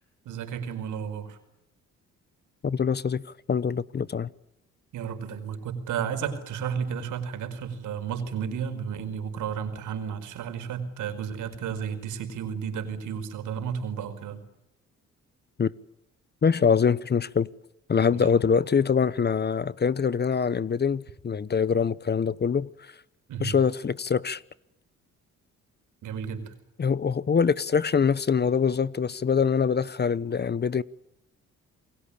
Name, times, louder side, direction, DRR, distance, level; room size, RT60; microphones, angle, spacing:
voice 1, 0.2-1.4 4.9-14.4 18.1-18.3 23.3-23.6 26.0-26.5, right 7 dB, 80° right, 4.8 m, -33 dB
voice 2, 2.6-3.2 3.5-4.3 15.6-15.7 16.4-17.5 17.9-22.7 23.4-24.4 26.8-30.8, left 6 dB, 35° left, 1.0 m, -24 dB
29.0 x 21.5 x 8.6 m
cardioid pair, 90°, 30 cm